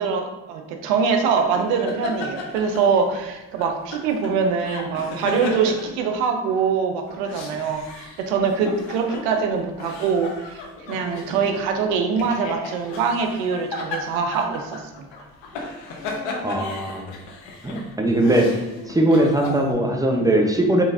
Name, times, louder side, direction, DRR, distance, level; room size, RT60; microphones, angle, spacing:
voice 1, 0.0-15.1, right 5 dB, 85° right, 4 dB, 0.6 m, -23 dB
sound 1, 1.3-3.2 3.6-6.6 7.1-19.7, left 3 dB, 65° left, 0.8 m, -35 dB
voice 2, 16.4-17.1 17.6-18.6 18.9-20.8, right 1 dB, 10° right, 2 dB, 0.7 m, -20 dB
3.8 x 3.3 x 2.6 m, 1.1 s
hypercardioid pair, 40°, 47 cm